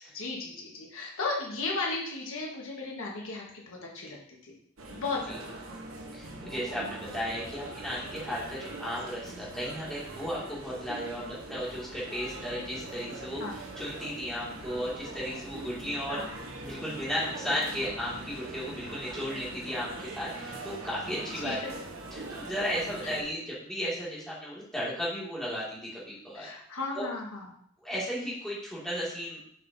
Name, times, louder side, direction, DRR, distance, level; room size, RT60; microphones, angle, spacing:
voice 1, 0.1-4.2 4.4-4.5 4.9-5.4 6.4-6.5 12.5-12.6 13.4-13.6 16.1-16.2 21.4-21.7 23.0-23.1 26.3-27.4, left 3 dB, 70° left, -2 dB, 1.4 m, -35 dB
sound 1, 4.8-23.2, right 2 dB, 80° right, 1.0 m, -42 dB
voice 2, 6.1-16.3 16.6-21.6 22.1-26.5 26.9-27.1 27.8-29.4, equal, 5° left, -8 dB, 2.2 m, -35 dB
6.4 x 5.5 x 2.7 m, 0.67 s
head